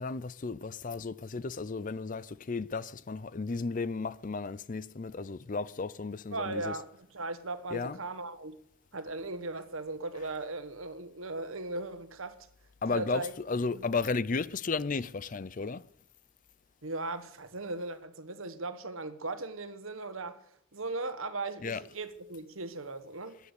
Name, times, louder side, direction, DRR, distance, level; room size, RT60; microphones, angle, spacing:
voice 1, 0.0-6.8 7.7-8.0 12.8-15.8 21.6-21.8, left 4 dB, 35° left, 0.5 m, -34 dB
voice 2, 6.3-8.6 8.9-12.5 12.9-13.3 13.7-13.8 16.8-20.5 20.7-23.4, right 2 dB, 70° right, 1.4 m, -38 dB
14.5 x 9.8 x 8.4 m
head